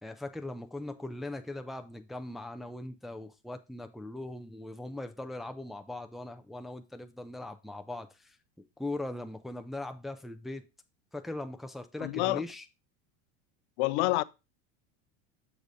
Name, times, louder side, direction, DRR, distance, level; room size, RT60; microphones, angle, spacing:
voice 1, 0.0-8.4 8.8-10.6 11.1-12.6, left 2 dB, ahead, 0.4 m, -40 dB
voice 2, 12.0-12.4 13.8-14.2, left 21 dB, 80° left, 0.6 m, -27 dB
6.8 x 3.9 x 4.8 m
supercardioid pair, 130°, 33 cm